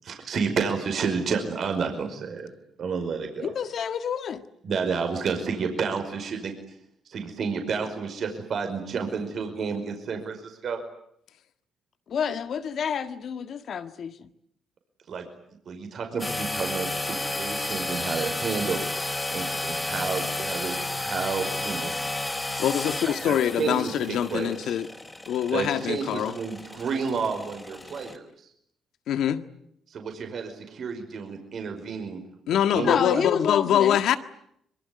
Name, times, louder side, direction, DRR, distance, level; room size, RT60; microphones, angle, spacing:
voice 1, 0.0-2.5 2.8-3.5 4.6-6.5 7.1-10.8 15.1-15.3 15.7-18.9 19.3-21.9 23.1-24.8 25.5-28.2 29.9-32.2 32.7-33.3, right 5 dB, 60° right, 5.4 m, -30 dB
voice 2, 3.4-4.4 12.1-14.3 32.8-34.0, left 7 dB, 60° left, 1.8 m, -29 dB
sound 1, 16.2-28.2, left 2 dB, 15° left, 3.9 m, -32 dB
voice 3, 22.6-24.9 25.3-26.3 29.1-29.4 32.5-34.2, left 10 dB, 80° left, 1.7 m, -24 dB
25.0 x 23.5 x 9.7 m
cardioid pair, 90°, 0 cm